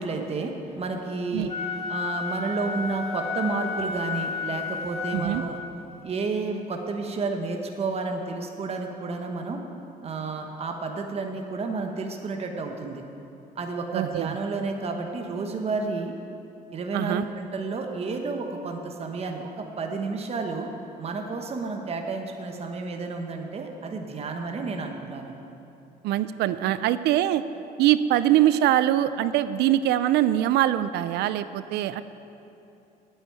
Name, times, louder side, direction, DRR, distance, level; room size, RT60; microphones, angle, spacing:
voice 1, 0.0-1.5 1.9-5.6 6.0-9.6 10.0-13.0 13.5-16.1 16.7-20.7 21.0-25.3, right 3 dB, 35° right, 3 dB, 1.2 m, -31 dB
Wind instrument woodwind instrument, 1.5-5.8, left 5 dB, 35° left, 2.2 m, -32 dB
voice 2, 5.1-5.4 13.9-14.3 16.9-17.3 26.0-27.4 27.8-32.0, right 12 dB, 80° right, 14 dB, 0.5 m, -23 dB
9.2 x 8.1 x 9.2 m, 2.9 s
cardioid pair, 110°, 17 cm